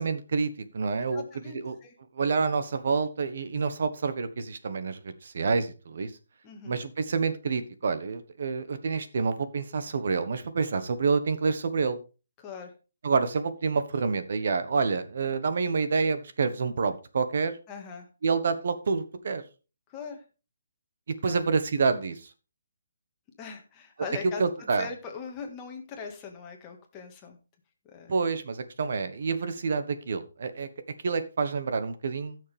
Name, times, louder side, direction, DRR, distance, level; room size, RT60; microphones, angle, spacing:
voice 1, 0.0-1.2 1.5-1.8 2.1-6.1 6.6-12.0 13.0-17.6 18.2-19.4 21.2-22.3 24.2-24.9 28.1-30.7 31.0-32.4, right 4 dB, 55° right, 10 dB, 1.3 m, -28 dB
voice 2, 1.1-1.9 6.4-6.7 12.4-12.7 17.7-18.1 19.9-20.2 21.2-21.4 23.4-27.4 27.8-28.1, left 5 dB, 15° left, 2 dB, 1.7 m, -41 dB
15.0 x 6.5 x 3.5 m, 0.32 s
hypercardioid pair, 170°, 0 cm